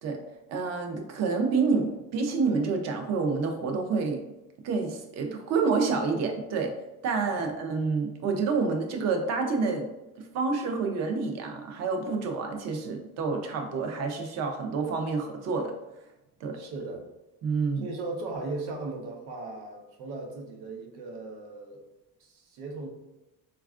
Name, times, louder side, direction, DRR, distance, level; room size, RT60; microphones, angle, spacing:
voice 1, 0.5-4.2 4.6-6.7 7.0-9.9 10.3-15.7 16.4-16.6 17.4-17.9, right 4 dB, 45° right, 4 dB, 0.5 m, -28 dB
voice 2, 16.5-17.0 17.8-21.8 22.2-22.9, right 3 dB, 90° right, 2 dB, 0.8 m, -37 dB
4.1 x 2.3 x 2.3 m, 0.98 s
cardioid pair, 170°, 38 cm